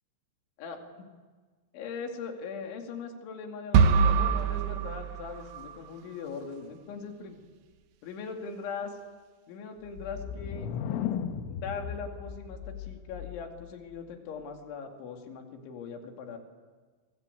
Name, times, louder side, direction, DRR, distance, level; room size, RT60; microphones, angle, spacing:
voice 1, 1.7-7.4 8.0-8.9 9.5-10.7 11.5-16.4, left 5 dB, 70° left, 3 dB, 5.0 m, -40 dB
sound 1, 3.7-5.8, right 6 dB, 75° right, 2.1 m, -24 dB
sound 2, 9.9-13.7, left 8 dB, 90° left, 3.6 m, -36 dB
29.5 x 24.0 x 8.5 m, 1.5 s
omnidirectional pair, 5.6 m